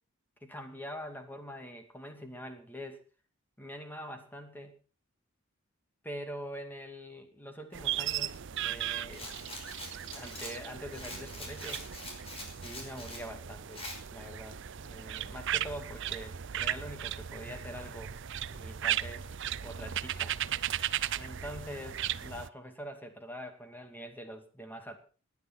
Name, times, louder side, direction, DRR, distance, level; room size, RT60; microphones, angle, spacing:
voice 1, 0.4-3.0 3.6-4.8 6.0-9.3 10.1-12.1 12.6-18.1 18.5-19.3 19.6-20.3 21.1-25.0, equal, 10° left, 6 dB, 2.4 m, -44 dB
sound 1, 7.7-22.5, right 11 dB, 60° right, 0.6 m, -36 dB
Rattle, 9.1-13.3 13.7-14.0, left 2 dB, 30° left, 5.5 m, -44 dB
18.0 x 10.5 x 5.9 m, 0.38 s
head